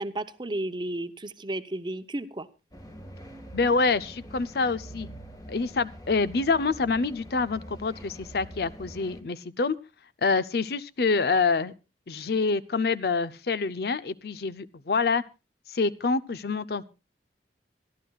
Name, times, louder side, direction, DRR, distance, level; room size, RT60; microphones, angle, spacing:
voice 1, 0.0-2.5, right 1 dB, 25° right, 11 dB, 0.8 m, -33 dB
sound 1, 2.7-9.2, equal, 20° left, 1.8 m, -44 dB
voice 2, 3.5-5.1 5.5-9.8 10.2-11.7 12.1-15.2 15.7-16.8, left 4 dB, 60° left, 16 dB, 0.6 m, -26 dB
26.0 x 11.5 x 2.3 m, 0.28 s
head